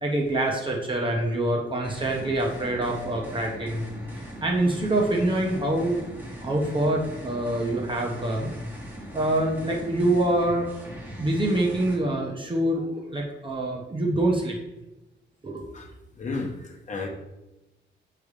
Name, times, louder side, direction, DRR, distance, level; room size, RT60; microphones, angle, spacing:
voice 1, 0.0-3.8 4.4-6.0 6.4-8.5 9.1-10.7 11.2-14.6 15.4-15.6, right 1 dB, 25° right, -1 dB, 0.8 m, -25 dB
sound 1, 1.8-12.0, equal, 10° right, 1.3 m, -40 dB
voice 2, 16.2-17.1, left 3 dB, 35° left, 2 dB, 1.0 m, -32 dB
6.9 x 3.3 x 4.8 m, 0.99 s
wide cardioid pair, 155°, 20 cm